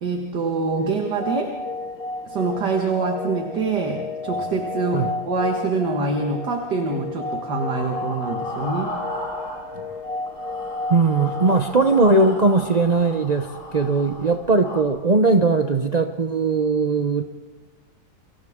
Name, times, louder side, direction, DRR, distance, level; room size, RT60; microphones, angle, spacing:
voice 1, 0.0-1.5 2.3-8.9, right 3 dB, 65° right, 2 dB, 2.2 m, -25 dB
sound 1, 0.8-13.6, left 2 dB, 85° left, 3.9 m, -32 dB
sound 2, 7.7-10.0 10.3-14.8, equal, 65° left, 5.4 m, -36 dB
voice 2, 10.9-17.2, right 3 dB, 80° right, 5 dB, 0.3 m, -19 dB
30.0 x 25.0 x 3.7 m, 1.3 s
omnidirectional pair, 2.0 m